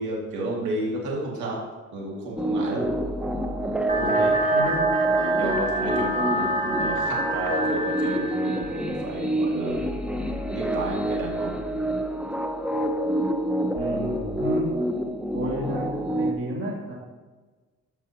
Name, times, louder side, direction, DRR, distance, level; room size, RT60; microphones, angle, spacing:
voice 1, 0.0-1.6 1.9-2.8 4.0-4.3 5.2-9.8 10.5-11.6, right 2 dB, 75° right, -3 dB, 2.1 m, -32 dB
sound 1, 2.4-16.3, right 1 dB, 5° right, 0.7 m, -27 dB
sound 2, 3.9-8.9, right 1 dB, 25° right, 1.3 m, -28 dB
voice 2, 3.9-4.9 13.7-14.7 15.3-16.9, equal, 50° right, -4 dB, 2.7 m, -31 dB
14.5 x 6.1 x 2.8 m, 1.3 s
cardioid pair, 90°, 30 cm